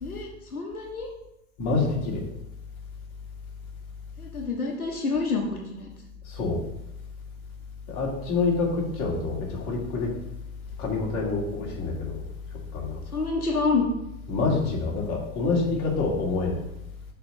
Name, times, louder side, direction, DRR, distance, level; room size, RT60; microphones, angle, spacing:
voice 1, 0.0-1.1 4.2-5.9 13.1-13.9, left 4 dB, 85° left, 0 dB, 1.2 m, -28 dB
voice 2, 1.6-2.2 6.3-6.6 7.9-10.1 10.8-12.2 12.7-13.0 14.3-16.6, left 3 dB, 40° left, -2 dB, 2.4 m, -27 dB
6.6 x 4.1 x 5.5 m, 0.86 s
figure-of-eight pair, 100°, 43 cm